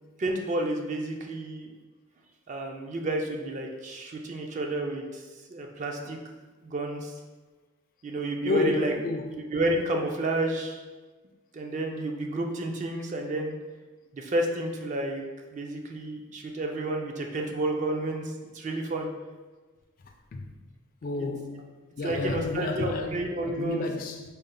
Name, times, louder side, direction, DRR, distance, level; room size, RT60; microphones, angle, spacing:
voice 1, 0.2-1.7 2.5-5.2 5.5-6.2 6.6-7.1 8.0-8.9 9.3-10.8 11.5-13.6 14.1-15.2 15.5-19.1 21.2-21.3 22.0-23.9, right 1 dB, 35° right, 0.3 m, -30 dB
voice 2, 8.4-9.3 20.3-20.4 21.0-21.6 22.0-23.3 23.5-24.2, left 2 dB, 40° left, 0.3 m, -30 dB
4.1 x 2.0 x 3.7 m
head